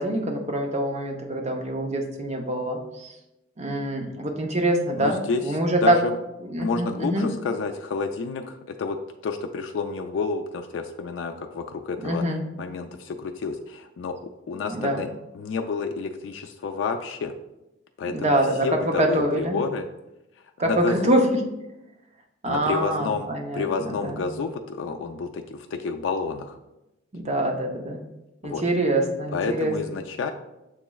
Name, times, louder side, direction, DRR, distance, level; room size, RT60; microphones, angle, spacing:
voice 1, 0.0-3.1 3.6-6.0 6.4-7.3 12.0-12.4 14.7-15.0 18.1-19.6 20.6-21.3 22.4-24.3 27.1-28.0 28.4-29.8, right 1 dB, 35° right, 2 dB, 0.6 m, -25 dB
voice 2, 5.0-6.1 6.6-9.0 9.2-12.2 12.6-14.2 14.5-15.1 15.3-17.3 18.0-18.4 18.6-19.8 20.6-21.1 22.5-23.3 23.5-26.6 28.4-28.6 29.3-30.3, left 4 dB, 70° left, 4 dB, 0.3 m, -29 dB
7.0 x 3.0 x 2.3 m, 0.95 s
head